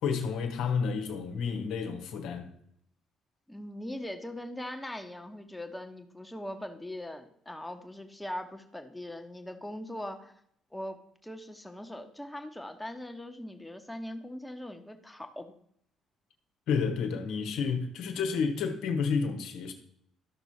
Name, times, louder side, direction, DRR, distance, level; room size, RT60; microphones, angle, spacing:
voice 1, 0.0-2.5 16.7-19.7, left 5 dB, 65° left, 1.4 m, -30 dB
voice 2, 3.5-10.4 10.7-15.5, left 1 dB, 10° left, 1.4 m, -41 dB
13.0 x 6.1 x 4.3 m
hypercardioid pair, 50°, 0 cm